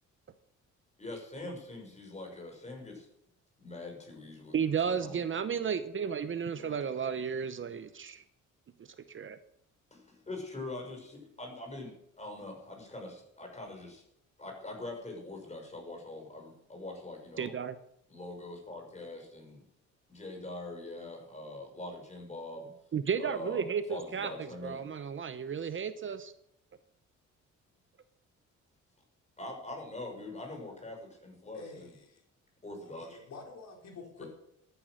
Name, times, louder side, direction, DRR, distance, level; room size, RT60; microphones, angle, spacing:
voice 1, 1.0-3.1 3.6-4.6 4.8-5.2 6.5-6.8 9.9-14.0 14.4-17.5 18.1-19.6 20.1-22.7 23.2-24.8 29.4-31.9 32.6-33.3 34.2-34.3, left 2 dB, 20° left, 2 dB, 6.1 m, -43 dB
voice 2, 4.5-8.2 9.1-9.4 17.4-17.8 22.9-23.8 24.1-26.3, right 7 dB, 40° right, 12 dB, 0.8 m, -33 dB
voice 3, 31.5-32.2 32.8-34.3, left 4 dB, 60° left, 2 dB, 3.6 m, -48 dB
13.5 x 10.0 x 6.6 m, 0.76 s
cardioid pair, 90°, 30 cm